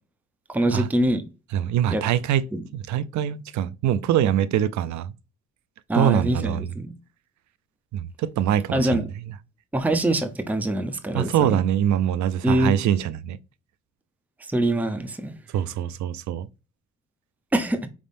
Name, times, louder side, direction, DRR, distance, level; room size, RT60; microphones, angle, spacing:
voice 1, 0.5-1.2 1.9-2.0 2.5-2.6 5.9-6.9 8.7-9.1 9.7-11.6 12.4-12.7 14.5-15.3 17.5-17.9, right 1 dB, 5° right, 0.6 m, -24 dB
voice 2, 1.5-2.4 2.7-5.1 5.9-6.7 7.9-9.1 11.1-13.4 15.5-16.5, right 10 dB, 70° right, 0.5 m, -23 dB
5.0 x 3.5 x 2.5 m
cardioid pair, 90°, 30 cm